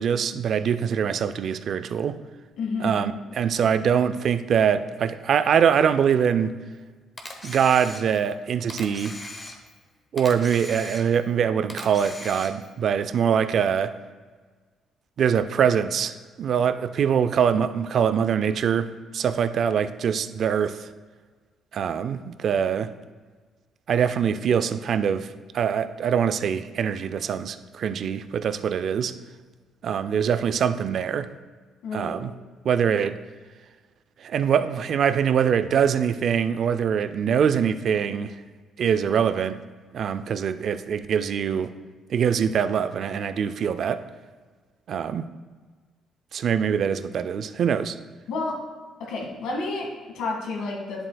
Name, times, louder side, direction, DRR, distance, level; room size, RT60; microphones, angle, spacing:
voice 1, 0.0-2.2 2.8-6.5 7.4-9.2 10.1-14.0 15.2-20.9 21.7-22.9 23.9-29.1 29.8-31.3 31.9-32.3 32.6-33.2 34.2-38.3 38.8-39.6 39.9-41.7 42.1-44.0 44.9-45.3 46.3-48.0, right 7 dB, 50° right, 12 dB, 0.4 m, -23 dB
voice 2, 2.6-3.1 31.8-32.2 48.3-48.7 49.0-51.1, left 3 dB, 85° left, 0 dB, 1.9 m, -30 dB
Camera, 7.2-8.3 8.7-9.8 10.2-11.3 11.7-12.7, left 2 dB, 20° left, 0.9 m, -39 dB
10.5 x 7.6 x 2.3 m, 1.4 s
cardioid pair, 135°, 0 cm